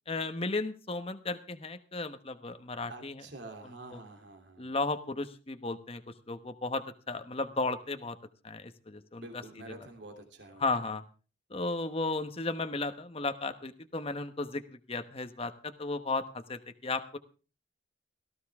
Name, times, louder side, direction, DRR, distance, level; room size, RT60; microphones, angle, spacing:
voice 1, 0.1-3.2 3.9-4.0 4.6-6.0 6.3-8.2 8.4-9.2 10.6-11.0 11.5-14.6 14.9-17.2, left 3 dB, 30° left, 9 dB, 1.0 m, -34 dB
voice 2, 2.9-4.8 9.2-10.6, right 2 dB, 60° right, 4 dB, 3.0 m, -48 dB
18.0 x 14.0 x 3.5 m, 0.35 s
head